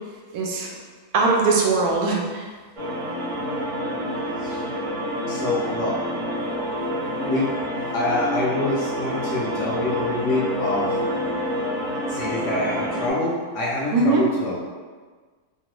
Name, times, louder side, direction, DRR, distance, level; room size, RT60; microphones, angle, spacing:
voice 1, 0.3-0.7 1.1-2.5 13.9-14.3, right 3 dB, 85° right, -1 dB, 1.1 m, -20 dB
sound 1, 2.8-13.1, equal, 50° right, 0.6 m, -28 dB
voice 2, 5.3-6.0 7.2-7.5 7.9-11.0 12.1-14.6, left 2 dB, 65° left, -5 dB, 0.8 m, -26 dB
3.0 x 2.2 x 2.9 m, 1.4 s
omnidirectional pair, 1.6 m